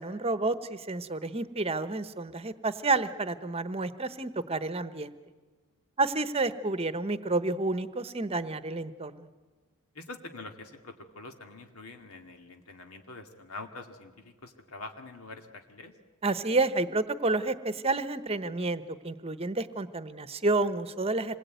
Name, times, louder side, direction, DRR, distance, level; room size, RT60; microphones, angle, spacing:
voice 1, 0.0-5.1 6.0-9.3 16.2-21.4, right 3 dB, 25° right, 12 dB, 1.0 m, -30 dB
voice 2, 9.9-15.9, left 3 dB, 80° left, 5 dB, 2.3 m, -45 dB
26.5 x 21.0 x 9.3 m, 1.4 s
head